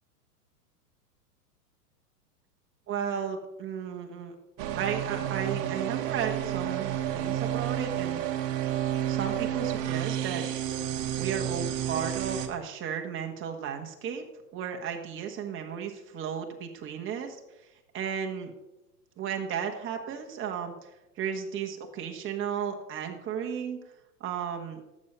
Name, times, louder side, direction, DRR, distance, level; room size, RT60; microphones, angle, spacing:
voice 1, 2.9-4.3 4.7-8.2 9.1-10.4 11.2-14.2 14.5-17.4 17.9-18.5 19.2-20.7 21.2-23.8 24.2-24.8, right 7 dB, 25° right, 3 dB, 1.5 m, -34 dB
sound 1, 4.6-12.5, right 11 dB, 55° right, 1.3 m, -30 dB
12.0 x 7.6 x 5.6 m, 0.94 s
hypercardioid pair, 120°, 47 cm